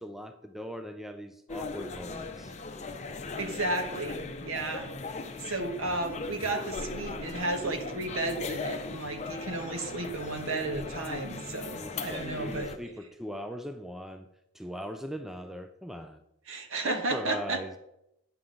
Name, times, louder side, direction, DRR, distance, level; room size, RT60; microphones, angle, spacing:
voice 1, 0.0-2.5 11.7-14.3 14.5-16.2 16.8-17.7, equal, ahead, 7 dB, 0.3 m, -40 dB
sound 1, 1.5-12.8, left 3 dB, 30° left, 0.6 m, -38 dB
voice 2, 3.4-4.9 5.4-12.7 16.5-17.6, right 2 dB, 65° right, 6 dB, 1.2 m, -33 dB
9.7 x 7.2 x 3.9 m, 0.85 s
head